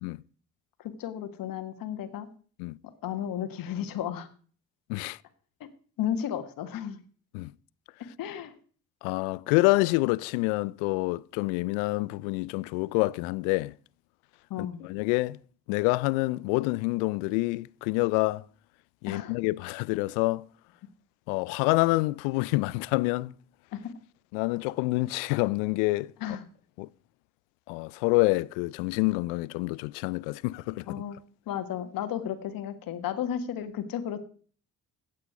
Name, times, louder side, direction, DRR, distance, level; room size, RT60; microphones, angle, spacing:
voice 1, 0.8-2.3 2.8-4.3 5.6-5.7 6.0-7.0 8.2-8.6 14.5-14.8 19.0-19.4 23.7-23.9 26.2-26.4 30.9-31.2 31.5-34.2, left 9 dB, 70° left, 1.7 m, -33 dB
voice 2, 9.0-13.7 14.6-15.4 15.7-18.4 19.0-20.5 21.3-23.3 24.3-26.1 26.8-26.9 27.7-31.0, left 22 dB, 85° left, 0.5 m, -27 dB
15.0 x 8.6 x 5.0 m
hypercardioid pair, 50°, 36 cm